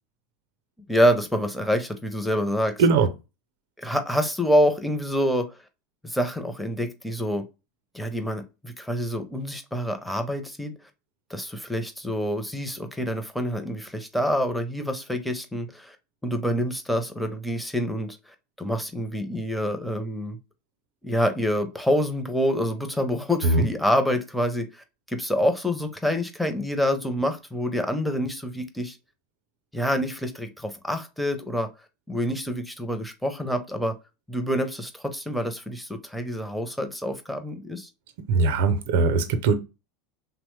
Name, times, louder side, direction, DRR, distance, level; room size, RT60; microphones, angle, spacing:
voice 1, 0.9-2.7 3.8-5.5 6.0-7.4 7.9-10.7 11.3-16.0 16.2-18.2 18.6-20.4 21.0-29.0 29.7-31.7 32.1-33.9 34.3-37.9, equal, ahead, 0.6 m, -26 dB
voice 2, 38.3-39.5, right 4 dB, 70° right, 0.5 m, -20 dB
3.0 x 2.0 x 3.0 m
hypercardioid pair, 95°, 0 cm